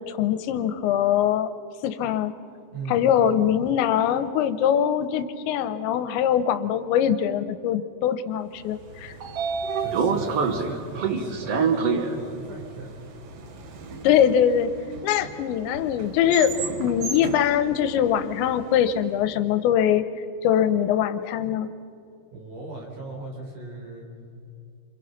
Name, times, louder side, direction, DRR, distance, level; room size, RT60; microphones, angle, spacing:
voice 1, 0.1-1.5 1.8-2.3 2.9-9.1 14.0-14.7 15.0-16.5 16.8-20.1 20.4-21.7, left 9 dB, 85° left, 11 dB, 3.2 m, -22 dB
voice 2, 2.7-3.2 9.8-12.9 22.3-24.1, right 2 dB, 50° right, -1 dB, 5.7 m, -37 dB
Train / Sliding door, 8.8-18.9, right 5 dB, 90° right, 1.3 m, -29 dB
27.5 x 27.5 x 5.8 m, 2.5 s
omnidirectional pair, 5.1 m